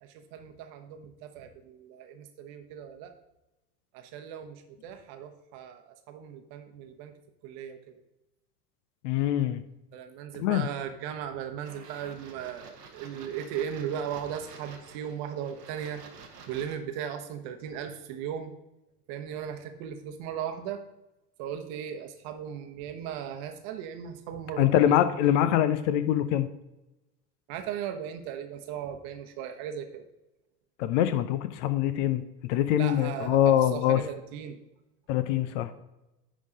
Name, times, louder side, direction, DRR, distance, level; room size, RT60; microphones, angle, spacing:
voice 1, 0.0-3.1 3.9-7.1 7.4-8.0 9.9-16.0 16.5-18.5 19.1-20.8 21.4-24.8 27.5-30.0 32.8-34.6, right 9 dB, 50° right, 6 dB, 1.1 m, -37 dB
voice 2, 9.0-9.6 10.4-10.7 24.6-26.5 30.8-34.0 35.1-35.7, left 11 dB, 50° left, 11 dB, 0.7 m, -24 dB
sound 1, 11.6-16.8, right 5 dB, 80° right, 1.2 m, -49 dB
10.0 x 3.7 x 4.9 m, 0.95 s
figure-of-eight pair, 80°, 47 cm